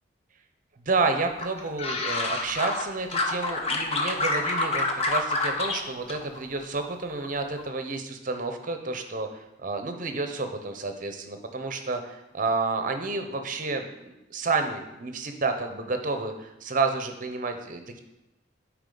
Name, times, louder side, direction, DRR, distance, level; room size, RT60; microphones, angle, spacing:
voice 1, 0.9-9.3 9.6-18.0, right 3 dB, 45° right, 6 dB, 0.7 m, -30 dB
sound 1, 1.4-2.8 3.1-5.8 6.1-6.9 7.2-7.6, left 2 dB, 35° left, 0.7 m, -27 dB
8.6 x 4.8 x 3.9 m, 0.94 s
head